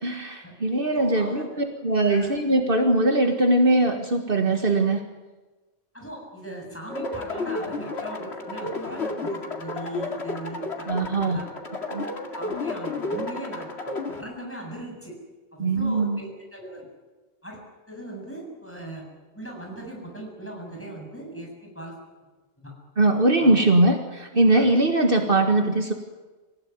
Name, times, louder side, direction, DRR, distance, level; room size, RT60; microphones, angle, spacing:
voice 1, 0.0-5.0 10.9-11.4 11.9-12.1 15.6-16.2 23.0-25.9, right 2 dB, 55° right, 4 dB, 2.0 m, -21 dB
voice 2, 0.8-1.5 2.0-2.4 5.9-11.5 12.3-15.2 15.5-16.9 17.4-17.6 17.9-19.1 19.3-22.0 22.6-22.7 23.4-23.6 24.5-24.7, right 1 dB, 10° left, 0 dB, 7.2 m, -39 dB
sound 1, 6.9-14.2, left 2 dB, 70° left, 2.5 m, -32 dB
25.5 x 16.5 x 9.5 m, 1.2 s
omnidirectional pair, 1.1 m